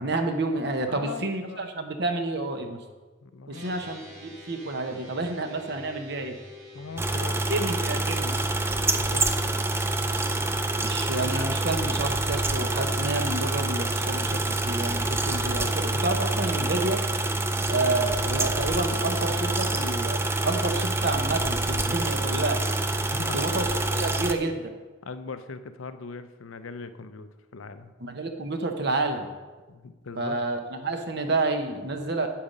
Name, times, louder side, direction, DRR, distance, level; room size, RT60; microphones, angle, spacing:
voice 1, 0.0-2.8 3.5-6.4 7.5-8.3 10.8-17.0 17.7-22.6 23.3-23.6 23.9-24.7 28.0-29.3 30.2-32.3, right 2 dB, 50° right, 5 dB, 1.0 m, -29 dB
voice 2, 0.9-1.6 3.2-3.7 6.7-7.4 8.9-9.3 23.1-23.4 25.0-27.9 29.7-30.4, left 4 dB, 75° left, 10 dB, 0.6 m, -40 dB
sound 1, 3.5-20.8, left 4 dB, 75° right, 3.1 m, -49 dB
sound 2, 7.0-24.3, right 2 dB, 10° right, 0.5 m, -26 dB
8.6 x 8.6 x 5.4 m, 1.3 s
head